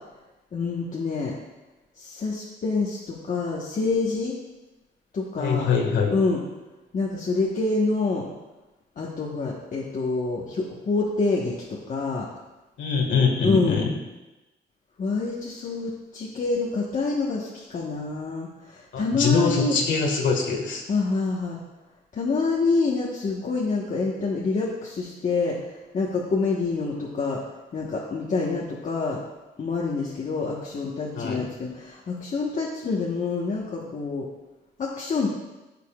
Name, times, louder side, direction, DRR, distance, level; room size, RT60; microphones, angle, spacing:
voice 1, 0.5-1.3 2.0-4.3 5.1-5.7 6.1-6.4 6.9-8.3 9.0-12.3 13.4-13.8 15.0-19.8 20.9-21.6 22.1-27.4 27.7-29.2 29.6-34.3 34.8-35.3, left 3 dB, 45° left, -4 dB, 1.2 m, -27 dB
voice 2, 5.4-6.1 12.8-13.9 18.9-20.8 31.1-31.4, left 5 dB, 80° left, 0 dB, 1.7 m, -23 dB
14.5 x 6.7 x 2.4 m, 1.1 s
cardioid pair, 125°, 19 cm